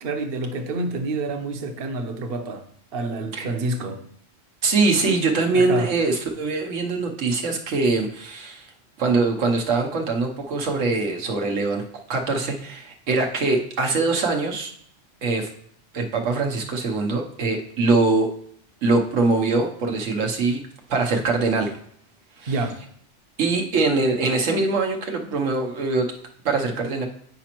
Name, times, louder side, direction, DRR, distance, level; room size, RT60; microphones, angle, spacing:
voice 1, 0.0-2.6 2.9-4.0 5.5-5.9 22.5-22.8, right 2 dB, 55° right, 6 dB, 0.9 m, -28 dB
voice 2, 4.6-8.7 9.0-11.8 12.1-14.7 15.2-15.5 15.9-18.3 18.8-20.6 20.9-21.7 22.4-22.5 23.4-26.1 26.4-27.0, right 3 dB, 90° right, 2 dB, 1.3 m, -23 dB
9.2 x 5.0 x 2.9 m, 0.64 s
omnidirectional pair, 1.2 m